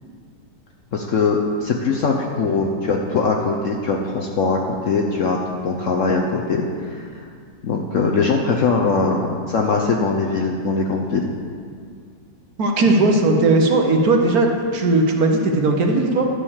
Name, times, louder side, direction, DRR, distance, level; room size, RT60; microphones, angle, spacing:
voice 1, 0.9-5.4 5.6-7.2 7.6-11.3, left 4 dB, 60° left, 0 dB, 0.8 m, -21 dB
voice 2, 12.6-16.3, right 2 dB, 60° right, 2 dB, 1.3 m, -17 dB
11.0 x 4.9 x 7.1 m, 2.2 s
omnidirectional pair, 1.9 m